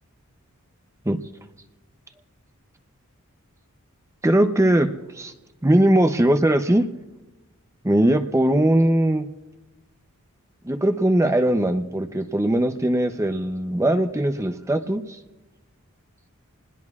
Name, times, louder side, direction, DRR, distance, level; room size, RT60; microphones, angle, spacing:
voice 1, 4.2-5.3 5.6-6.8 7.8-9.3 10.6-15.2, right 1 dB, 15° right, 7 dB, 0.6 m, -20 dB
28.0 x 20.5 x 2.4 m, 1.2 s
head